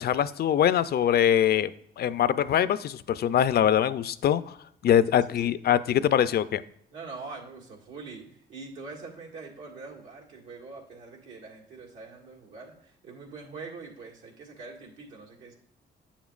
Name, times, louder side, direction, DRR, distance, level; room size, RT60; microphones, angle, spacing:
voice 1, 0.0-1.7 2.0-4.6 4.8-6.6, left 10 dB, 55° left, 15 dB, 0.4 m, -23 dB
voice 2, 5.2-5.5 6.9-15.5, right 4 dB, 85° right, -2 dB, 1.9 m, -44 dB
8.7 x 7.2 x 2.4 m, 0.67 s
cardioid pair, 90°, 20 cm